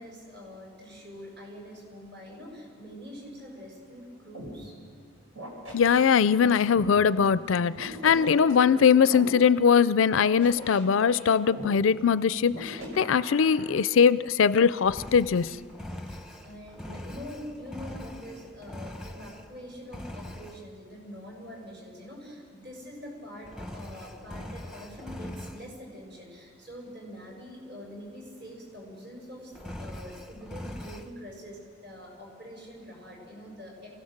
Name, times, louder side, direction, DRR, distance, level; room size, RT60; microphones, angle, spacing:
voice 1, 0.0-4.8 16.0-29.5 29.8-33.9, equal, 55° right, -1 dB, 6.5 m, -44 dB
sound 1, 4.3-4.5 5.4-6.9 7.7-9.3 10.1-11.6 12.5-13.8, right 1 dB, 85° right, 5.4 m, -41 dB
voice 2, 5.7-15.6, left 6 dB, 75° left, 17 dB, 0.4 m, -21 dB
Engine, 14.8-19.6 19.9-20.6 23.5-25.7 29.5-31.1, left 1 dB, 5° right, 0.8 m, -42 dB
27.5 x 16.5 x 6.6 m, 2.1 s
head